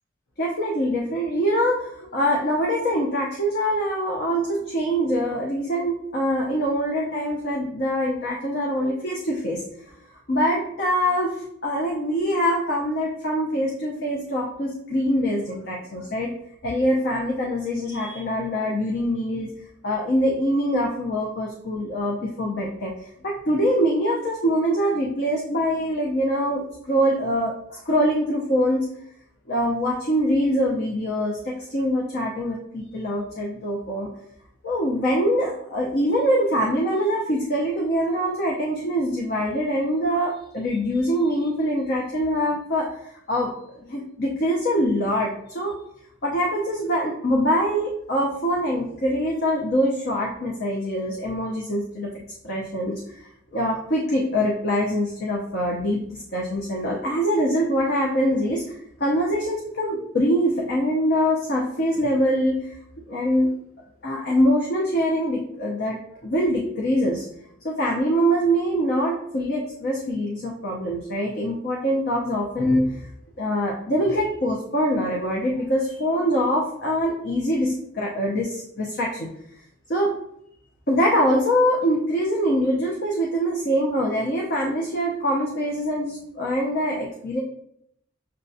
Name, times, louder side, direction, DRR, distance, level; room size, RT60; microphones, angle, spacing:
voice 1, 0.4-9.6 9.9-10.0 10.3-11.3 11.6-16.3 16.6-19.5 19.8-22.9 23.2-26.6 26.9-28.9 29.5-34.1 34.6-42.9 43.3-45.8 46.2-52.1 52.4-56.0 56.3-62.7 63.1-63.5 64.0-67.3 67.6-73.1 73.4-79.3 79.9-80.1 80.9-87.4, equal, 50° left, -2 dB, 0.6 m, -24 dB
6.5 x 2.2 x 2.7 m, 0.72 s
head